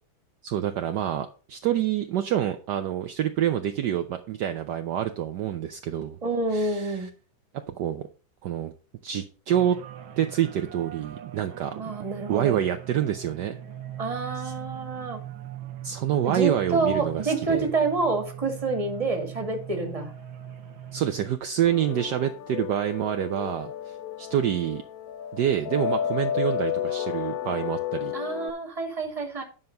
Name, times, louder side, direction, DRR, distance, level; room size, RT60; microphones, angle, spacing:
voice 1, 0.4-6.2 6.5-7.1 7.5-8.1 8.4-8.7 9.0-9.8 10.2-11.7 12.3-13.6 14.4-14.5 15.8-17.7 20.9-24.8 25.3-28.1, right 10 dB, 65° right, 7 dB, 1.2 m, -27 dB
voice 2, 6.2-7.1 11.8-12.6 14.0-15.2 16.2-20.1 28.1-29.4, right 3 dB, 20° right, 4 dB, 1.9 m, -28 dB
sound 1, 9.5-21.4, right 11 dB, 85° right, 1.8 m, -40 dB
sound 2, 21.6-28.5, left 9 dB, 75° left, 0.8 m, -32 dB
9.7 x 5.7 x 5.2 m, 0.37 s
omnidirectional pair, 2.1 m